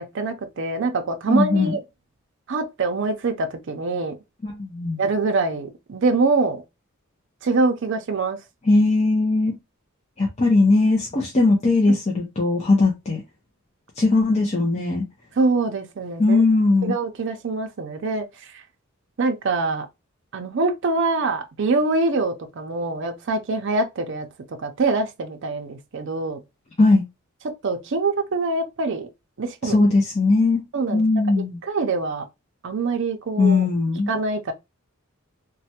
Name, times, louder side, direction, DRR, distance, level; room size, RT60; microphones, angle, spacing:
voice 1, 0.0-1.8 2.5-4.1 5.0-6.6 7.4-8.4 15.4-16.4 16.8-18.3 18.5-18.6 19.2-19.9 20.3-24.3 24.6-26.4 27.6-29.1 29.4-29.8 30.7-31.0 31.6-32.3 32.6-33.7 34.1-34.5, right 3 dB, 60° right, 0.5 m, -24 dB
voice 2, 1.3-1.7 4.4-5.0 8.6-9.5 10.2-13.2 14.0-15.0 16.2-16.9 26.8-27.0 29.6-30.6 30.9-31.6 33.4-34.1, left 3 dB, 30° left, 0.5 m, -19 dB
3.2 x 2.2 x 2.8 m
head